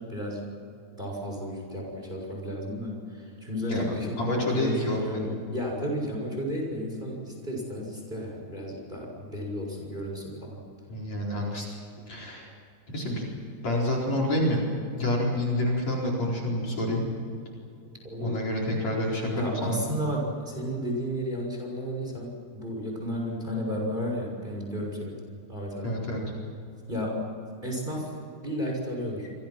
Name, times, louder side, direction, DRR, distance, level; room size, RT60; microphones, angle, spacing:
voice 1, 0.1-0.5 1.0-10.6 18.0-18.4 19.3-25.1 25.5-26.0 26.9-27.2 27.6-28.1 28.4-29.3, equal, 10° right, 0 dB, 6.4 m, -33 dB
voice 2, 4.2-5.3 10.9-12.5 12.9-13.2 13.6-14.6 15.0-17.0 18.2-19.8 25.8-26.2, left 1 dB, 45° left, -1 dB, 5.5 m, -28 dB
27.5 x 26.5 x 6.1 m, 2.5 s
omnidirectional pair, 4.5 m